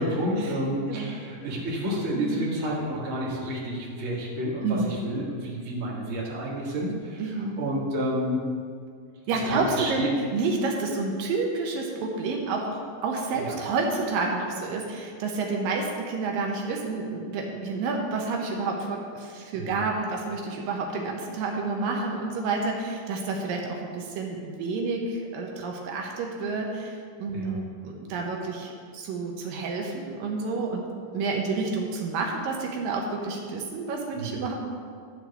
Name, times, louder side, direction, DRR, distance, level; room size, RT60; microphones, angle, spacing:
voice 1, 0.0-8.4 9.3-10.1 13.4-13.6 19.6-19.8 27.3-27.5 34.1-34.3, equal, 30° right, -5 dB, 1.4 m, -30 dB
voice 2, 4.6-5.2 7.2-7.7 9.3-10.0 10.3-34.5, right 3 dB, 75° right, 1 dB, 2.5 m, -29 dB
12.0 x 4.5 x 7.0 m, 2.2 s
omnidirectional pair, 4.2 m